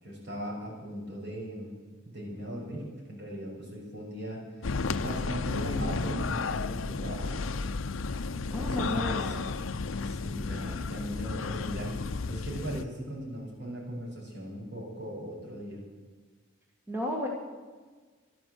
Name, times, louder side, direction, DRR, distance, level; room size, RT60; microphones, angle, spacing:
voice 1, 0.0-1.8 2.0-7.4 8.3-9.4 10.0-11.9 12.3-15.8, equal, 60° right, -3 dB, 6.0 m, -39 dB
sound 1, 4.6-12.8, left 4 dB, 75° left, 0.6 m, -32 dB
voice 2, 8.5-9.5 16.9-17.3, equal, 10° right, 0 dB, 1.6 m, -33 dB
15.0 x 12.0 x 7.9 m, 1.4 s
head